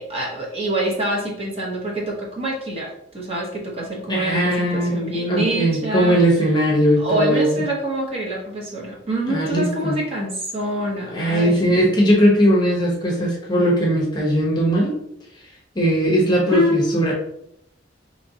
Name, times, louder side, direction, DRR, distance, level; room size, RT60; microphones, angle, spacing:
voice 1, 0.0-6.2 7.0-11.9 16.5-16.8, equal, 30° right, -3 dB, 0.9 m, -25 dB
voice 2, 4.1-7.5 9.3-9.9 11.1-14.9 15.7-17.1, equal, 20° left, -3 dB, 0.8 m, -19 dB
4.2 x 3.1 x 2.7 m, 0.75 s
head